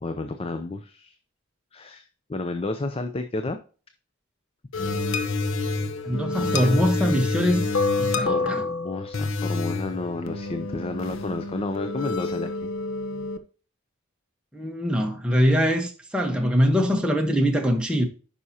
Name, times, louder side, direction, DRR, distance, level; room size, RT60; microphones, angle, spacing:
voice 1, 0.0-1.2 1.7-3.6 8.2-12.7, left 2 dB, 25° left, 0.5 m, -31 dB
sound 1, 4.7-13.4, left 3 dB, 60° left, 0.8 m, -28 dB
voice 2, 6.0-7.7 8.0-8.6 14.5-18.0, equal, 5° right, 1.0 m, -23 dB
9.6 x 5.6 x 2.8 m
head